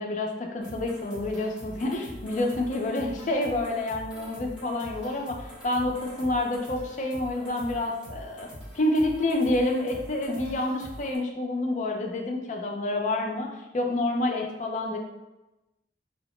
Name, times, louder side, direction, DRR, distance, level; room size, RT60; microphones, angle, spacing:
voice 1, 0.0-8.5 8.7-15.0, left 2 dB, 40° left, 1 dB, 0.4 m, -28 dB
sound 1, 0.6-11.2, equal, 5° right, 0.8 m, -44 dB
2.7 x 2.0 x 3.0 m, 1.0 s
head